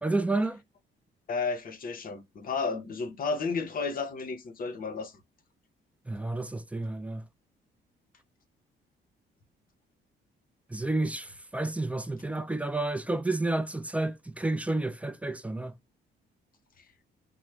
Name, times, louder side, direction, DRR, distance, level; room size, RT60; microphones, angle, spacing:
voice 1, 0.0-0.6 6.1-7.2 10.7-15.7, right 2 dB, 5° right, 0.3 m, -30 dB
voice 2, 1.3-5.1, left 4 dB, 45° left, 0.7 m, -32 dB
3.1 x 2.0 x 3.2 m
cardioid pair, 90°, 20 cm